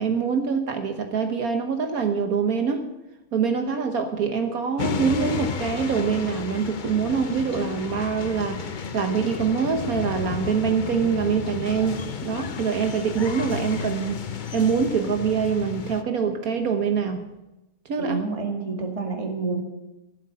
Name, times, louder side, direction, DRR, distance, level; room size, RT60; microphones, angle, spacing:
voice 1, 0.0-2.9 3.3-14.3 14.5-17.2 17.8-18.2, right 6 dB, 70° right, 6 dB, 1.5 m, -25 dB
sound 1, 4.8-16.0, left 6 dB, 45° left, 0.6 m, -32 dB
voice 2, 18.0-19.6, right 4 dB, 20° right, 2 dB, 2.1 m, -28 dB
13.5 x 7.7 x 8.7 m, 0.97 s
omnidirectional pair, 1.6 m